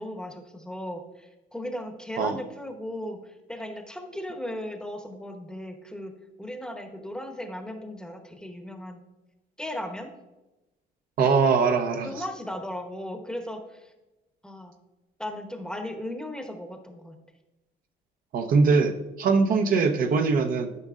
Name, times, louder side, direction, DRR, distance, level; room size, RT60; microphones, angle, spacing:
voice 1, 0.0-6.1 6.4-9.0 9.6-10.1 12.0-13.9 14.4-14.7 15.2-17.1, left 1 dB, 5° left, 4 dB, 0.9 m, -36 dB
voice 2, 11.2-12.1 18.3-20.7, right 4 dB, 55° right, 6 dB, 0.8 m, -22 dB
12.5 x 5.3 x 2.4 m, 1.0 s
cardioid pair, 110°, 17 cm